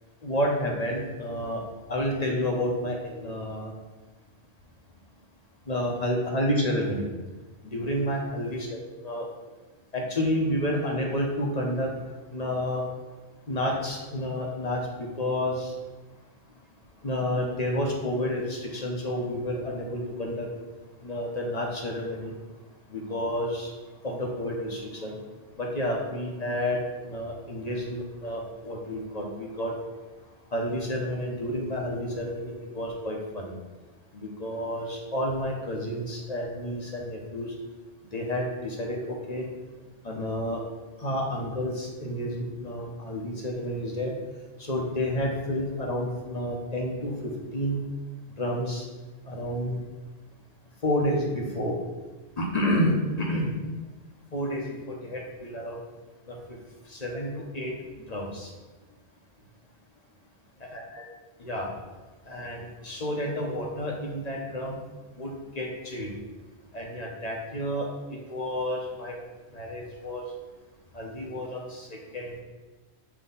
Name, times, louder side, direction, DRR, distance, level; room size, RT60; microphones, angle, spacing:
voice 1, 0.2-1.6 1.9-3.7 5.7-7.0 7.6-9.3 9.9-11.9 12.3-12.8 13.5-15.7 17.0-20.5 21.0-22.3 22.9-23.7 24.0-25.2 25.6-26.8 27.0-29.7 30.5-33.6 34.1-37.5 38.1-39.5 40.0-40.6 41.0-44.1 44.6-47.1 47.5-47.8 48.4-48.8 49.2-49.8 50.8-51.7 52.4-53.5 54.3-55.8 56.3-56.4 56.9-57.7 58.1-58.5 60.7-61.0 61.4-61.7 62.3-64.8 65.2-66.1 66.7-67.9 68.3-69.2 69.5-70.2 70.9-72.4, equal, 40° left, -1 dB, 1.0 m, -30 dB
5.9 x 3.0 x 5.5 m, 1.2 s
omnidirectional pair, 1.1 m